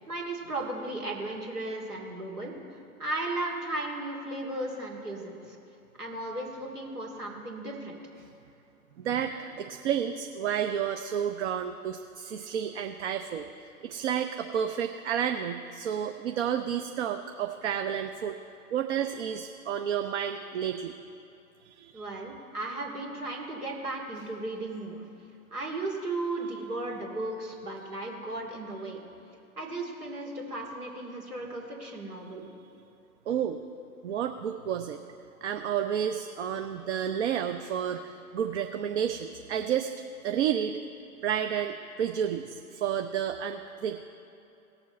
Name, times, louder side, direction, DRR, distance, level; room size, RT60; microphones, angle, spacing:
voice 1, 0.1-5.6 6.0-8.0 21.9-25.0 25.5-29.0 29.6-32.5, right 2 dB, 85° right, -2 dB, 2.5 m, -35 dB
voice 2, 9.0-13.5 13.8-18.4 18.7-20.9 21.6-22.0 33.3-33.6 34.0-35.0 35.4-39.9 40.2-40.8 41.2-44.0, right 9 dB, 50° right, 6 dB, 0.6 m, -31 dB
17.5 x 7.1 x 4.2 m, 2.9 s
figure-of-eight pair, 115°, 44 cm